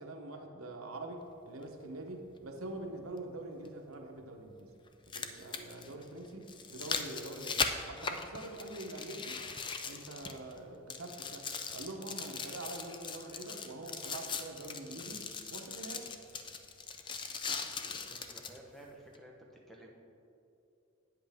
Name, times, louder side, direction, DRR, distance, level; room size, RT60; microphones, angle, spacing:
voice 1, 0.0-4.7 5.1-9.4 9.9-11.5 11.7-15.3 15.5-16.0, right 2 dB, 90° right, 3 dB, 0.9 m, -45 dB
sound 1, 1.6-1.7 3.7-3.8 4.9-10.6 10.9-18.6 19.2-19.3, left 5 dB, 25° left, 0.4 m, -39 dB
voice 2, 18.1-19.4 19.7-19.9, right 1 dB, ahead, -2 dB, 0.9 m, -53 dB
9.0 x 7.9 x 3.5 m, 2.6 s
head